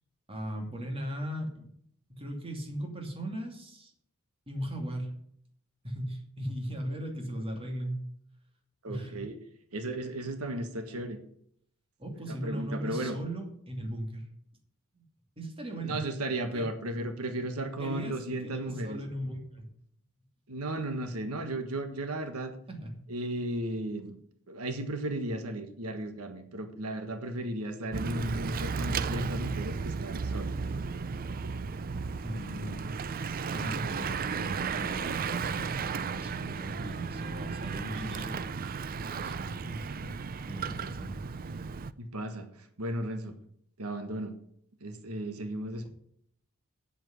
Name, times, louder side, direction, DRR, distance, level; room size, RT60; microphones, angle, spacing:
voice 1, 0.3-1.7 2.1-3.9 4.5-5.1 5.8-8.0 8.9-9.2 12.0-14.3 15.4-16.0 16.5-16.7 17.8-19.7 22.7-23.0 32.2-33.0 33.5-38.4 39.0-40.1 40.4-41.2, right 1 dB, 25° right, 2 dB, 2.5 m, -38 dB
voice 2, 8.8-9.4 9.7-11.2 12.3-13.1 15.8-19.0 20.5-22.5 23.1-24.2 24.5-30.5 34.0-34.2 42.0-42.5 42.8-43.3 43.8-44.3 44.8-45.9, right 1 dB, 90° right, 7 dB, 1.5 m, -35 dB
Bicycle / Mechanisms, 27.9-41.9, right 5 dB, 40° right, 0.5 m, -34 dB
8.8 x 7.9 x 8.2 m, 0.68 s
head